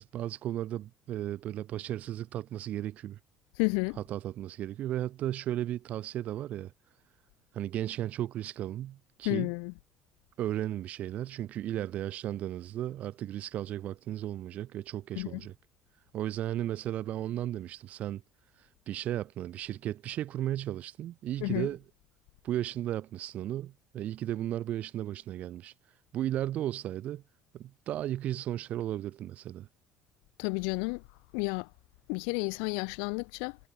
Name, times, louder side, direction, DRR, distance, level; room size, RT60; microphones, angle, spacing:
voice 1, 0.0-3.2 4.1-6.7 7.5-9.5 10.4-15.5 16.1-18.2 18.6-21.8 22.4-25.7 26.1-27.2 27.5-29.7, right 12 dB, 55° right, 2.2 m, -35 dB
voice 2, 3.6-4.0 9.2-9.7 15.2-15.4 21.4-21.7 30.4-31.0 31.3-31.7 32.1-33.6, left 40 dB or more, 85° left, 2.7 m, -31 dB
supercardioid pair, 105°, 3 cm